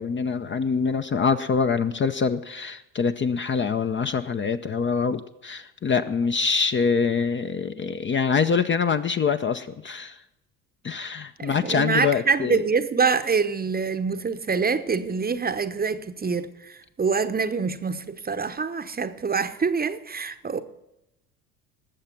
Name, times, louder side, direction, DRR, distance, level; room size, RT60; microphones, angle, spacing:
voice 1, 0.0-10.2 10.8-12.6, left 5 dB, 25° left, 0.7 m, -25 dB
voice 2, 11.4-20.6, right 5 dB, 20° right, 0.9 m, -25 dB
19.5 x 7.4 x 5.9 m
hypercardioid pair, 60°, 45 cm